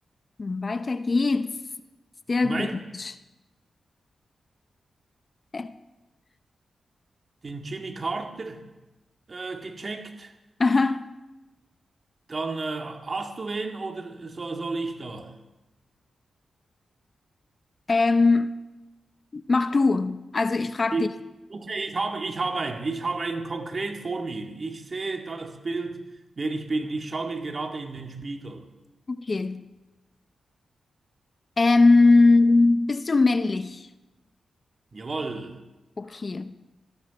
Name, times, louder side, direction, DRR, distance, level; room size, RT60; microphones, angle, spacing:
voice 1, 0.4-1.6 2.3-2.7 2.9-3.1 5.5-5.7 10.6-11.1 17.9-18.5 19.3-21.1 29.1-29.6 31.6-33.9 36.0-36.5, left 3 dB, 45° left, 0.6 m, -21 dB
voice 2, 2.4-2.7 7.4-8.7 9.3-10.4 12.3-15.4 20.9-21.1 21.5-26.0 26.4-28.7 34.9-35.6, right 3 dB, 50° right, 2.1 m, -31 dB
18.5 x 14.0 x 4.2 m
cardioid pair, 55°, 0 cm